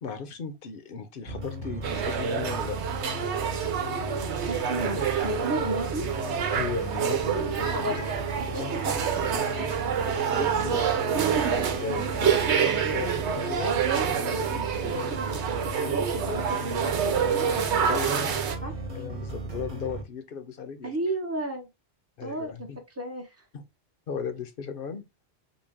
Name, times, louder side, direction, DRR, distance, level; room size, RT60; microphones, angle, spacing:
voice 1, 0.0-2.8 4.8-5.1 6.5-8.2 8.6-10.8 11.8-13.7 14.3-14.7 17.8-18.3 18.9-20.9 22.2-22.8 23.5-23.6 24.1-25.0, left 6 dB, 55° left, 0.8 m, -37 dB
sound 1, 1.3-20.0, right 2 dB, 45° right, 1.1 m, -36 dB
sound 2, 1.8-18.6, right 7 dB, 80° right, 1.0 m, -27 dB
voice 2, 4.3-6.0 7.5-8.0 8.4-8.8 11.9-12.1 13.6-17.0 17.2-18.0 18.6-18.7 20.8-21.7 22.2-22.7 23.0-23.4, right 1 dB, 15° right, 0.7 m, -34 dB
3.9 x 2.2 x 3.5 m
omnidirectional pair, 1.2 m